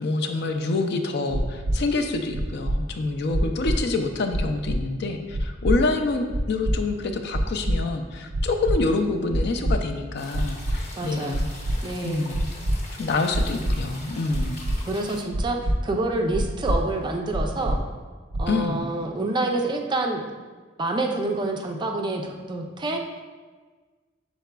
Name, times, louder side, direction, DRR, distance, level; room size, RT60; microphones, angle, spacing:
voice 1, 0.0-11.5 12.0-12.5 13.0-14.6 18.5-18.9, left 3 dB, 60° left, 6 dB, 0.4 m, -27 dB
sound 1, 1.3-1.8 2.3-2.8 3.3-3.8 4.3-4.8 5.3-5.8 6.3-6.7 7.3-7.8 8.3-8.8 9.3-9.8 10.3-10.8 11.3-11.8 12.3-12.8 13.3-13.7 14.3-14.8 15.3-15.8 16.3-16.8 17.3-17.8 18.3-18.6, right 1 dB, 80° right, 0.5 m, -24 dB
sound 2, 10.2-15.2, left 2 dB, 40° left, 0.8 m, -42 dB
voice 2, 11.0-11.4 11.8-12.3 14.9-17.8 18.4-20.2 20.8-23.0, right 2 dB, 25° right, 2 dB, 0.4 m, -27 dB
5.7 x 4.0 x 2.2 m, 1.4 s
head